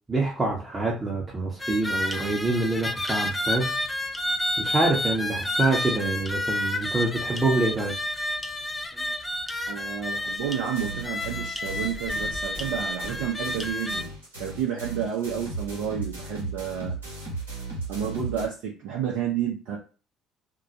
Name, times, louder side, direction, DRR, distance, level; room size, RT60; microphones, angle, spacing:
voice 1, 0.1-3.7 4.6-7.9, right 2 dB, 20° right, -3 dB, 0.8 m, -26 dB
sound 1, 1.6-14.0, left 1 dB, 15° left, 0.5 m, -30 dB
voice 2, 9.7-14.1 14.4-16.9 17.9-19.8, right 8 dB, 60° right, -2 dB, 0.6 m, -30 dB
sound 2, 10.7-18.5, right 3 dB, 80° right, 0.9 m, -36 dB
2.2 x 2.1 x 2.7 m, 0.35 s
figure-of-eight pair, 55°, 0 cm